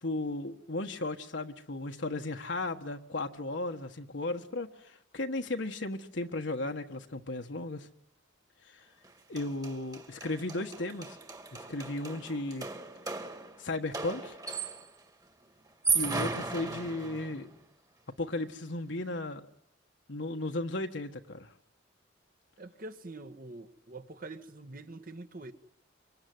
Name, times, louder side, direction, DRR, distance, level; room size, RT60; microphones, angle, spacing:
voice 1, 0.0-7.9 8.6-8.9 9.3-11.2 11.5-12.7 13.6-14.4 15.9-17.5 18.2-19.4 20.1-21.5, left 2 dB, 65° left, 1.5 m, -35 dB
sound 1, 9.0-9.1 9.4-15.0 15.7-17.5, right 4 dB, 20° right, 1.9 m, -36 dB
voice 2, 22.6-25.5, right 2 dB, 45° right, 1.6 m, -45 dB
25.0 x 24.0 x 9.5 m
head